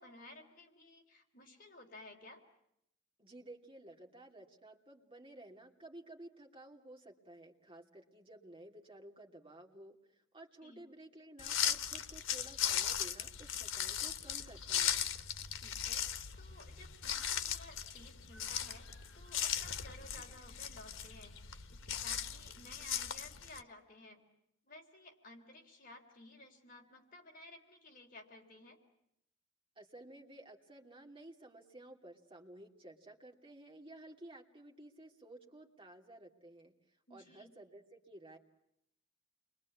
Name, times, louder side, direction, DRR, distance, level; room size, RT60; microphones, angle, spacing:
voice 1, 0.0-2.4 10.6-10.9 15.4-16.1 16.4-18.9 19.1-24.2 24.6-28.8 37.1-37.5, left 2 dB, 45° left, 2 dB, 3.6 m, -55 dB
voice 2, 3.2-15.0 29.8-38.4, right 1 dB, 30° right, 1 dB, 2.8 m, -54 dB
sound 1, 11.4-23.6, left 9 dB, 90° left, 1.3 m, -38 dB
29.0 x 23.0 x 8.5 m, 0.79 s
head